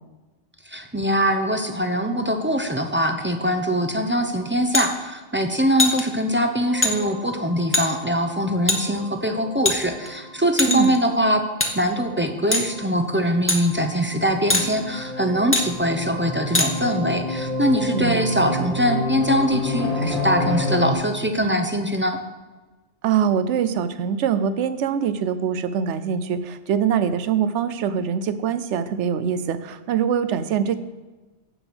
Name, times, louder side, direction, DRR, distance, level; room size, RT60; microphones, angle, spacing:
voice 1, 0.7-11.4 11.7-22.2, equal, 15° right, 5 dB, 0.5 m, -22 dB
sound 1, 4.7-4.9 5.8-6.0 6.8-6.9 7.7-7.9 8.7-8.8 9.6-10.1 10.6-11.0 11.6-11.7 12.5-12.7 13.5-13.6 14.5-14.7 15.5-15.7 16.5-16.7, left 1 dB, 10° left, 0.9 m, -20 dB
sound 2, 6.7-20.9, left 2 dB, 50° left, 1.5 m, -30 dB
voice 2, 17.9-18.3 23.0-30.8, right 8 dB, 80° right, 13 dB, 0.9 m, -23 dB
8.0 x 6.8 x 6.0 m, 1.2 s
omnidirectional pair, 1.2 m